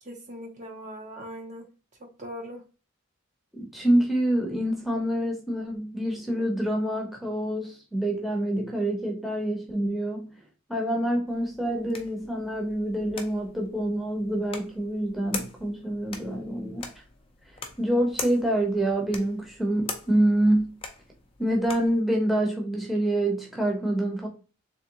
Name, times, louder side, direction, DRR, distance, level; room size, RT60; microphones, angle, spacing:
voice 1, 0.0-1.7 2.0-2.6, equal, 35° right, 0.6 m, -40 dB
voice 2, 3.5-10.3 10.7-16.9 17.8-20.8 21.4-24.3, right 1 dB, ahead, 0.8 m, -26 dB
sound 1, 11.3-22.0, left 4 dB, 25° left, 0.6 m, -42 dB
3.5 x 3.4 x 2.8 m
head